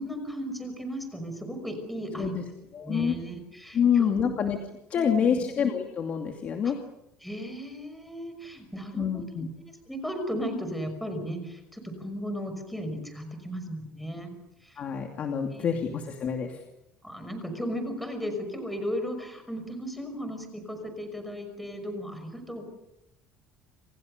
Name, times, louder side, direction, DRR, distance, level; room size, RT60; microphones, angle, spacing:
voice 1, 0.0-2.3 2.8-4.3 4.9-5.4 6.6-6.7 7.2-9.2 9.6-14.3 14.6-14.8 15.5-15.6 17.0-22.6, equal, ahead, 6 dB, 5.7 m, -35 dB
voice 2, 2.7-3.2 3.7-4.6 4.9-6.8 9.0-9.5 14.8-16.6, left 7 dB, 35° left, 4 dB, 2.6 m, -27 dB
29.5 x 28.0 x 6.7 m, 0.85 s
cardioid pair, 165°, 4 cm